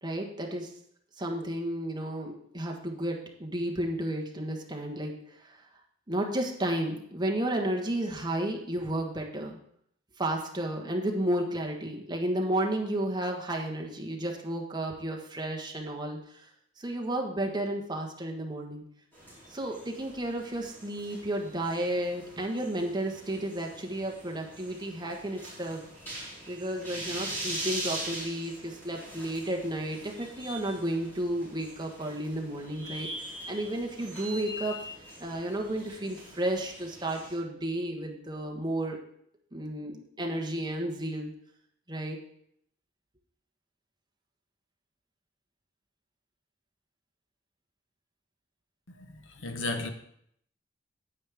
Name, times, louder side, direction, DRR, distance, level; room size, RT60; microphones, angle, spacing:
voice 1, 0.0-0.7 1.2-5.6 6.1-9.6 10.2-16.5 16.8-18.8 19.5-25.8 26.5-34.8 35.2-39.0 39.5-41.3 41.9-42.2, right 1 dB, 20° right, 1.3 m, -32 dB
sound 1, 19.1-37.3, right 1 dB, 10° left, 4.3 m, -42 dB
voice 2, 48.9-49.9, left 2 dB, 70° left, 1.1 m, -34 dB
9.5 x 9.1 x 3.5 m
head